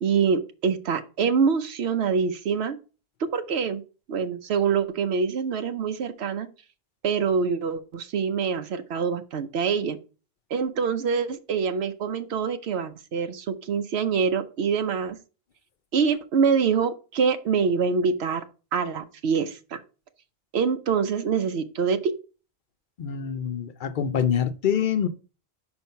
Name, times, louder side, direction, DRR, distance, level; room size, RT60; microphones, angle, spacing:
voice 1, 0.0-2.8 3.2-3.8 4.1-6.5 7.0-10.0 10.5-15.2 15.9-18.4 18.7-19.8 20.5-22.2, right 6 dB, 85° right, 0.9 m, -25 dB
voice 2, 23.0-25.1, left 8 dB, 60° left, 0.7 m, -25 dB
5.7 x 4.4 x 5.5 m
omnidirectional pair, 1.1 m